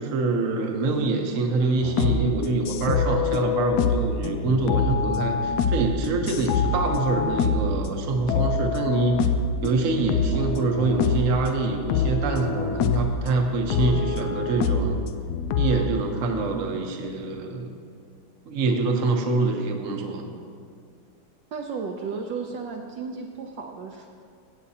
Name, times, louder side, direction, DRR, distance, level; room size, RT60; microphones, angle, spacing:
voice 1, 0.0-9.2 9.6-15.0 15.5-17.7 18.5-20.3, right 3 dB, 50° right, 3 dB, 1.1 m, -25 dB
sound 1, 1.8-7.9 8.3-9.8 10.1-11.4 11.9-13.2 13.7-15.9, left 4 dB, 80° left, 0.9 m, -25 dB
sound 2, 4.6-13.9, right 2 dB, 35° left, 1.4 m, -45 dB
voice 2, 21.5-24.1, right 5 dB, 70° right, 2 dB, 1.2 m, -34 dB
16.0 x 8.3 x 2.8 m, 2.2 s
omnidirectional pair, 2.3 m